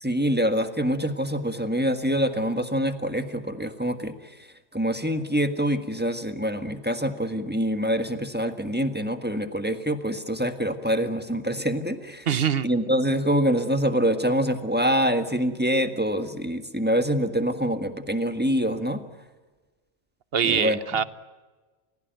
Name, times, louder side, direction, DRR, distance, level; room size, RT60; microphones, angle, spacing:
voice 1, 0.0-4.2 4.7-12.3 12.6-19.0 20.4-20.8, equal, 10° right, 8 dB, 1.6 m, -25 dB
voice 2, 12.3-12.7 20.3-21.0, right 7 dB, 55° right, 15 dB, 1.1 m, -23 dB
30.0 x 16.5 x 9.2 m, 1.3 s
omnidirectional pair, 1.3 m